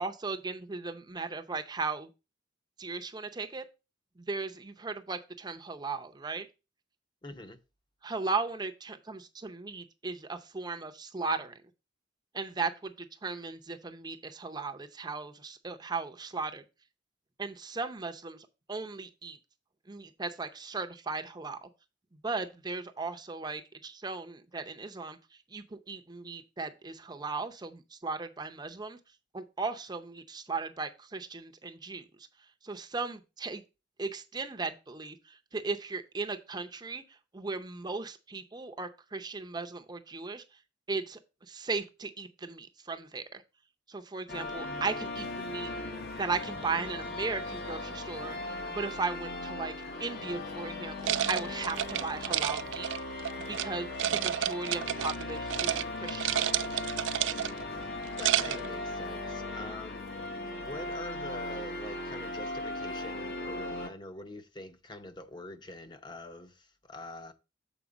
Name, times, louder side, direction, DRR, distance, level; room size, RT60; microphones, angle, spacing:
voice 1, 0.0-2.1 2.8-3.6 4.2-6.5 8.0-11.6 12.3-16.6 17.4-19.4 19.9-21.7 22.2-25.2 25.5-29.0 29.3-32.0 32.6-33.6 34.0-37.0 37.3-40.4 40.9-41.2 41.5-43.4 43.9-45.7 46.2-49.7 50.0-52.9 53.5-57.0, right 4 dB, 20° right, 0.6 m, -37 dB
voice 2, 7.2-7.6 58.2-60.3 60.6-67.3, left 2 dB, 25° left, 0.7 m, -45 dB
sound 1, 44.3-63.9, left 2 dB, 55° left, 1.1 m, -38 dB
sound 2, 51.0-53.7 54.0-55.2 55.5-55.8 56.1-57.6 58.0-58.7, right 11 dB, 80° right, 0.4 m, -30 dB
7.1 x 4.4 x 5.0 m
head